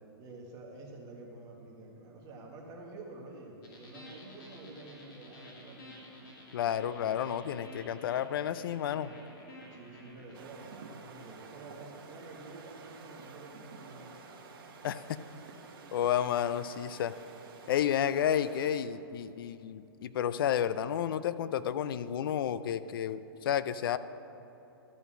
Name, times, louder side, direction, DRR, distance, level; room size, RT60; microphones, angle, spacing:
voice 1, 0.2-5.8 9.7-14.1, right 2 dB, 30° right, -1 dB, 1.6 m, -49 dB
sound 1, 3.6-10.3, left 1 dB, 40° left, 2.6 m, -51 dB
voice 2, 6.5-9.1 14.8-15.2 15.9-17.1 17.7-24.0, left 9 dB, 60° left, 14 dB, 0.4 m, -31 dB
sound 2, 10.3-18.8, right 4 dB, 60° right, 1.3 m, -51 dB
13.0 x 5.3 x 6.2 m, 2.9 s
hypercardioid pair, 130°, 13 cm